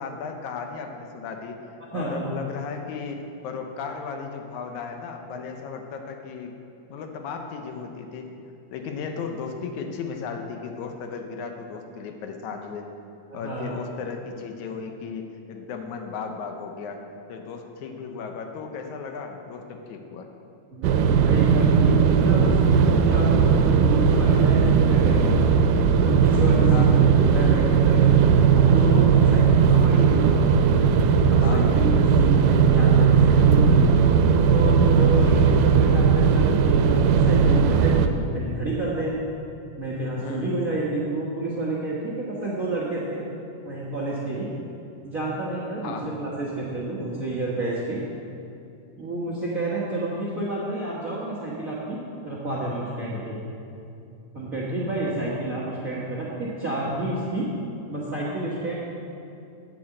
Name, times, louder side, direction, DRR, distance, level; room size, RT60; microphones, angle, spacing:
voice 1, 0.0-1.6 1.9-6.5 6.9-8.3 8.7-12.9 13.3-17.0 17.3-20.3 26.7-27.0 31.4-31.7 35.0-35.3 40.2-40.5 45.8-46.1, left 5 dB, 75° left, 4 dB, 2.1 m, -35 dB
voice 2, 1.9-2.3 13.3-13.7 20.7-25.3 26.0-30.3 31.3-33.8 34.5-39.2 39.8-43.2 43.6-44.5 45.0-48.0 49.0-52.0 52.2-53.4 54.3-57.5 57.9-58.7, right 2 dB, 60° right, -5 dB, 0.8 m, -29 dB
sound 1, 20.8-38.1, right 6 dB, 90° right, 2.2 m, -18 dB
8.8 x 7.7 x 7.7 m, 2.7 s
omnidirectional pair, 3.7 m